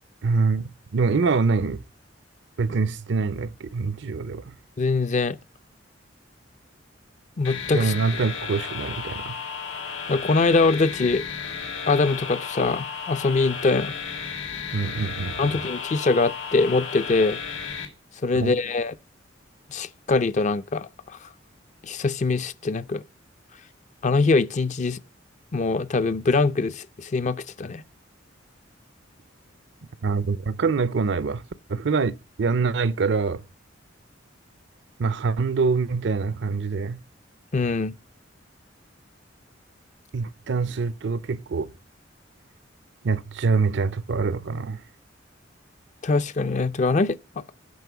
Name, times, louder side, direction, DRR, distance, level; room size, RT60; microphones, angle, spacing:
voice 1, 0.2-1.8 2.6-4.5 7.7-9.4 14.7-15.6 18.4-18.6 30.0-31.4 31.7-33.4 35.0-37.0 40.1-41.7 43.0-44.8, right 4 dB, 65° right, 0.5 m, -25 dB
voice 2, 4.8-5.4 7.4-7.9 10.1-11.2 11.9-13.9 15.4-17.4 18.2-18.9 19.7-20.9 21.8-23.0 24.0-25.0 25.5-27.8 37.5-37.9 46.0-47.2, left 3 dB, 40° left, 0.5 m, -23 dB
sound 1, 7.4-17.9, left 6 dB, 80° left, 2.2 m, -34 dB
9.4 x 5.5 x 6.8 m
head